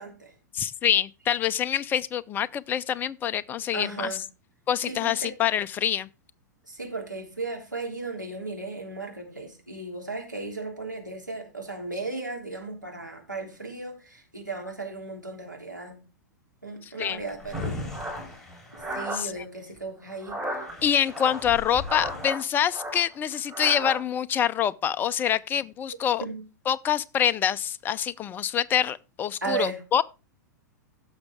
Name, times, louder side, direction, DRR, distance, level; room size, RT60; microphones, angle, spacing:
voice 1, 0.0-0.4 3.7-4.2 4.8-5.3 6.7-16.0 16.6-17.8 18.9-20.4 25.9-26.4 29.4-29.8, right 3 dB, 90° right, 3.3 m, -35 dB
voice 2, 0.5-4.1 4.7-6.1 17.0-17.2 19.2-19.3 20.8-26.2 26.7-30.0, left 9 dB, 20° left, 0.5 m, -26 dB
Drawer open or close, 17.0-19.8 20.3-20.4 20.6-22.3, left 2 dB, 5° left, 4.2 m, -38 dB
sound 1, 17.5-19.2 20.1-20.7 21.1-22.4 22.7-24.0, equal, 25° right, 6.2 m, -34 dB
15.5 x 6.4 x 3.6 m
figure-of-eight pair, 100°, 10 cm